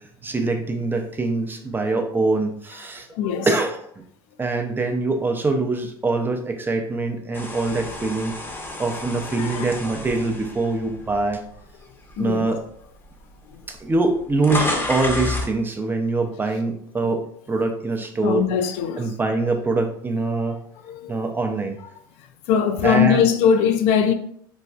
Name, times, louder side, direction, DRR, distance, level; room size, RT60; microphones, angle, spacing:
voice 1, 0.2-3.1 3.5-3.8 4.4-8.3 8.8-11.4 12.2-12.6 13.7-17.2 17.5-18.4 19.0-20.6 21.1-21.8 22.8-23.3, right 3 dB, 15° right, 0.5 m, -24 dB
voice 2, 3.1-3.5 9.4-9.7 12.2-12.4 13.5-13.6 17.0-17.1 18.2-19.1 20.8-21.2 22.5-24.1, left 7 dB, 65° left, 0.4 m, -21 dB
sound 1, 7.3-11.6 12.1-12.3 13.2-13.3 13.5-15.6, left 1 dB, 20° left, 0.8 m, -30 dB
4.0 x 2.3 x 2.3 m
hypercardioid pair, 80°, 12 cm